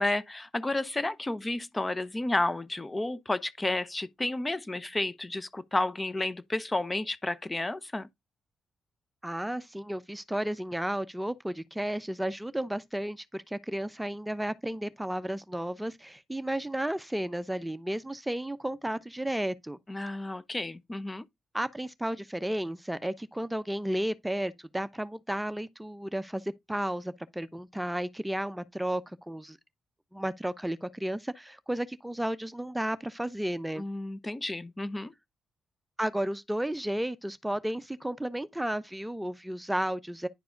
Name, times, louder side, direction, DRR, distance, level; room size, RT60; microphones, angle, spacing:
voice 1, 0.0-8.1 19.9-21.2 33.8-35.1, left 2 dB, 25° left, 0.9 m, -31 dB
voice 2, 9.2-19.8 21.5-29.6 30.1-33.8 36.0-40.3, right 1 dB, 10° right, 0.8 m, -33 dB
10.5 x 4.7 x 3.9 m
hypercardioid pair, 45°, 0 cm